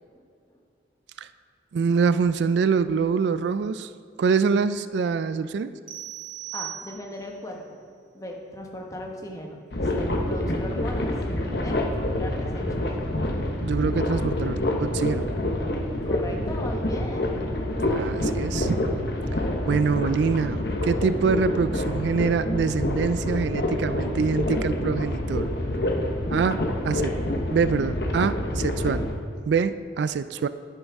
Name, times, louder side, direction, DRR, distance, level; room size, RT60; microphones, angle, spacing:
voice 1, 1.7-3.9 4.2-5.7 13.6-15.2 17.9-19.1 19.7-25.5 26.3-27.1 27.5-29.1 29.5-30.5, right 5 dB, 70° right, 13 dB, 0.3 m, -25 dB
sound 1, 5.9-7.4, right 14 dB, 45° right, 0.7 m, -38 dB
voice 2, 6.5-7.8 8.1-11.1 11.4-12.6 16.0-17.4, left 1 dB, 20° left, 0 dB, 1.1 m, -38 dB
sound 2, 9.7-29.1, left 1 dB, 60° left, 1.0 m, -27 dB
10.5 x 9.3 x 3.5 m, 2.3 s
head